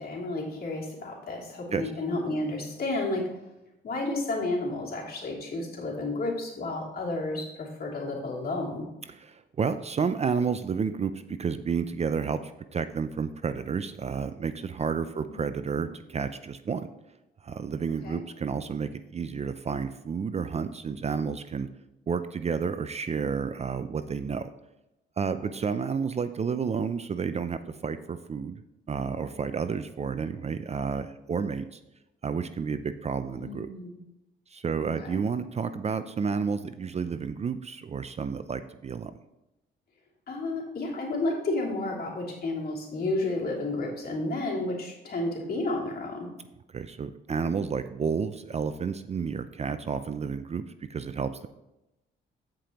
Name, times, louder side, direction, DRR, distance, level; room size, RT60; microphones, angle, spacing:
voice 1, 0.0-3.3 3.8-8.9 15.2-15.4 18.0-18.2 25.4-25.5 33.3-34.0 34.8-35.2 40.3-46.3, left 2 dB, 50° left, -3 dB, 3.0 m, -31 dB
voice 2, 9.1-16.9 17.4-21.7 22.1-24.5 25.2-28.6 28.9-31.8 32.2-33.7 34.5-39.1 46.7-50.6 50.9-51.5, right 6 dB, 35° right, 11 dB, 0.5 m, -31 dB
15.0 x 5.1 x 3.0 m, 0.92 s
cardioid pair, 90°, 20 cm